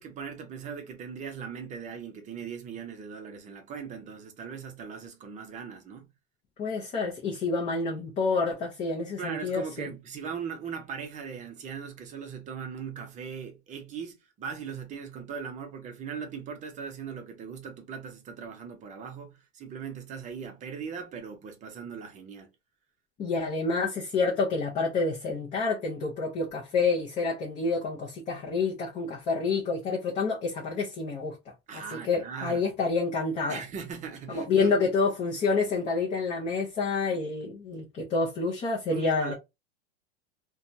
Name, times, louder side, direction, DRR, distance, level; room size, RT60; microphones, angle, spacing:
voice 1, 0.0-6.1 9.2-22.5 31.7-32.7 33.5-34.8 38.9-39.3, right 6 dB, 20° right, 0.6 m, -39 dB
voice 2, 6.6-9.9 23.2-31.4 31.7-33.6 34.3-39.3, left 4 dB, 20° left, 0.6 m, -28 dB
2.7 x 2.3 x 2.6 m
supercardioid pair, 135°, 33 cm